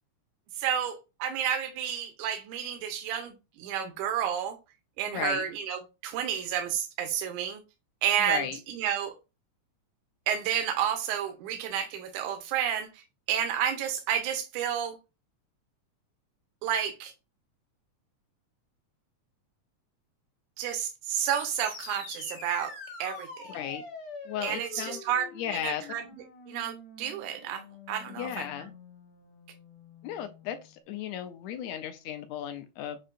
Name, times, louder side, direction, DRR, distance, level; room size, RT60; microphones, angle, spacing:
voice 1, 0.6-4.6 5.0-7.6 8.0-9.1 10.3-13.0 13.3-15.0 16.6-17.1 20.6-22.7 23.0-23.6 24.4-25.2 25.5-26.0 26.5-27.6 27.9-28.5, right 9 dB, 85° right, 2.1 m, -31 dB
voice 2, 5.1-5.4 8.3-8.6 23.5-23.8 24.2-25.0 25.4-25.8 28.1-28.7 30.0-33.0, left 10 dB, 80° left, 1.6 m, -35 dB
sound 1, 21.2-30.8, left 3 dB, 55° left, 1.0 m, -46 dB
7.3 x 2.7 x 2.5 m
omnidirectional pair, 3.4 m